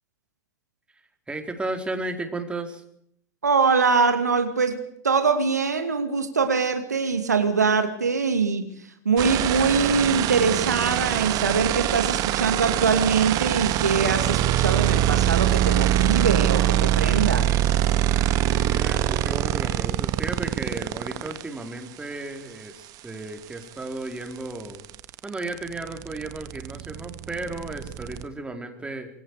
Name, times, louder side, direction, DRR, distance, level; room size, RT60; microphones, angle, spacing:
voice 1, 1.3-2.8 18.5-24.8 25.2-29.1, right 2 dB, 10° right, 5 dB, 4.4 m, -34 dB
voice 2, 3.4-8.8 9.0-17.5, right 5 dB, 85° right, 8 dB, 2.3 m, -23 dB
sound 1, 9.2-21.4 23.5-23.6 23.9-28.2, right 12 dB, 45° right, 1.8 m, -23 dB
26.5 x 23.5 x 5.0 m, 0.69 s
figure-of-eight pair, 85°, 9 cm